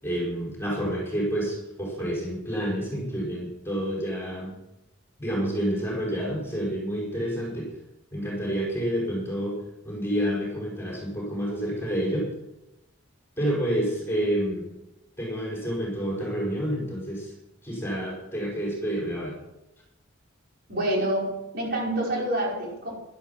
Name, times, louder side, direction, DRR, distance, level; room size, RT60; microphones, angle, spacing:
voice 1, 0.0-4.6 5.2-7.7 8.1-9.6 9.8-12.3 13.4-14.7 15.2-17.3 17.6-19.4, equal, 10° left, -4 dB, 5.3 m, -29 dB
voice 2, 20.7-22.9, right 1 dB, 50° right, -3 dB, 5.4 m, -27 dB
16.0 x 12.0 x 5.8 m, 0.95 s
head